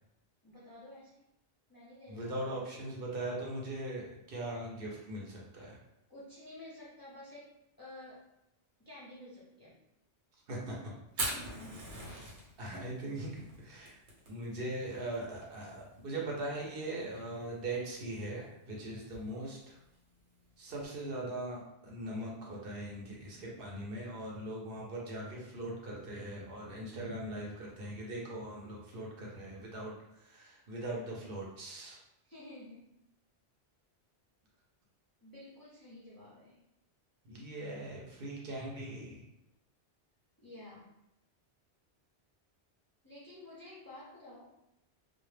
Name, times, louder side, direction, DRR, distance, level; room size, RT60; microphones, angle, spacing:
voice 1, 0.4-1.2 1.7-2.3 6.1-8.3 8.8-9.7 11.2-12.0 32.2-32.9 35.2-36.6 40.4-40.9 43.0-44.5, left 1 dB, 25° left, -8 dB, 0.5 m, -51 dB
voice 2, 2.1-5.8 10.5-10.9 12.6-14.0 14.3-19.8 20.6-32.0 37.2-39.2, right 1 dB, 60° right, -3 dB, 0.8 m, -40 dB
Fire, 11.1-20.9, right 1 dB, 80° right, 1.1 m, -44 dB
2.1 x 2.1 x 3.2 m, 0.89 s
omnidirectional pair, 1.1 m